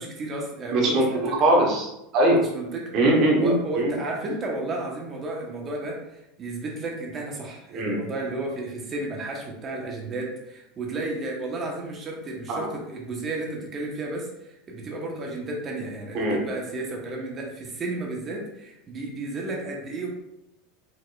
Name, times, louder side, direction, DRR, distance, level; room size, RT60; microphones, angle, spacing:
voice 1, 0.0-1.3 2.3-2.9 3.4-6.0 6.4-20.1, right 2 dB, 35° right, -1 dB, 1.4 m, -33 dB
voice 2, 0.7-1.0 1.4-2.4 2.9-3.9 7.7-8.0 12.5-12.7 16.1-16.4, right 1 dB, 55° right, -2 dB, 1.5 m, -21 dB
5.1 x 4.0 x 2.6 m, 0.85 s
hypercardioid pair, 95°, 0 cm